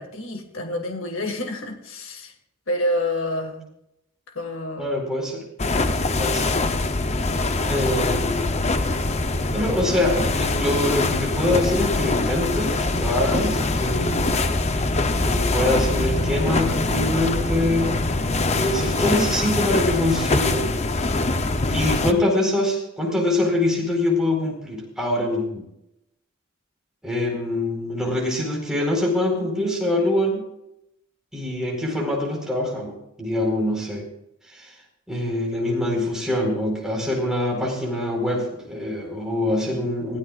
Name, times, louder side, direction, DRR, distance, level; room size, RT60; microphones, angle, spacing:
voice 1, 0.0-2.3 2.7-3.7 4.3-4.9, left 1 dB, 75° left, 4 dB, 2.1 m, -28 dB
voice 2, 4.8-5.4 6.2-6.6 7.7-8.6 9.5-14.5 15.2-18.0 18.5-20.7 21.7-25.6 27.0-30.5 31.3-34.1 34.5-34.7 35.1-40.2, left 1 dB, 5° right, -2 dB, 4.6 m, -24 dB
sound 1, 5.6-22.1, left 2 dB, 30° left, 0.8 m, -23 dB
22.5 x 16.0 x 2.5 m, 0.84 s
head